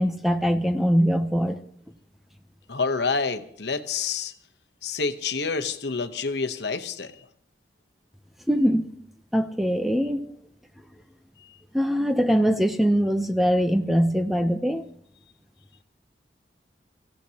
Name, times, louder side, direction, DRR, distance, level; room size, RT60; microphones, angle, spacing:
voice 1, 0.0-1.6 8.5-8.9 9.3-10.3 11.7-14.8, equal, ahead, 7 dB, 0.7 m, -22 dB
voice 2, 2.7-4.3 4.8-7.1, left 4 dB, 75° left, 9 dB, 1.0 m, -28 dB
25.5 x 15.5 x 2.9 m, 0.64 s
head